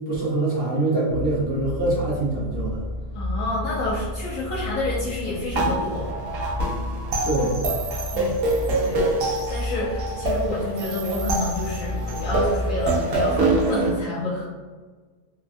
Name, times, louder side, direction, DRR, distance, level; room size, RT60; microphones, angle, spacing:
voice 1, 0.1-2.8 7.2-7.6, right 2 dB, 50° right, -7 dB, 1.0 m, -24 dB
sound 1, 1.1-13.8, left 1 dB, 35° right, 0.4 m, -32 dB
voice 2, 3.1-6.1 8.1-8.4 8.8-9.1 9.5-14.4, left 2 dB, 90° left, -9 dB, 1.1 m, -29 dB
sound 2, 5.6-13.9, right 2 dB, 85° right, 1.0 m, -25 dB
3.2 x 2.2 x 2.5 m, 1.4 s
omnidirectional pair, 1.3 m